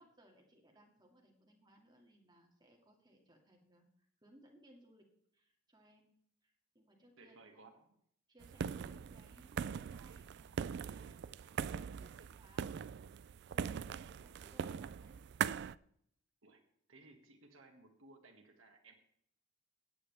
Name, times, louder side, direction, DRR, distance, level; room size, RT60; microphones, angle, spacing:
voice 1, 0.0-5.1 5.3-6.2 6.4-7.6 8.3-12.9 13.5-15.2, right 1 dB, 20° right, 1 dB, 2.2 m, -65 dB
voice 2, 7.2-7.9 16.4-16.6 16.9-18.9, right 2 dB, 75° right, 3 dB, 1.9 m, -60 dB
sound 1, 8.4-15.7, right 7 dB, 55° right, 0.3 m, -41 dB
16.5 x 9.4 x 3.4 m, 0.70 s
head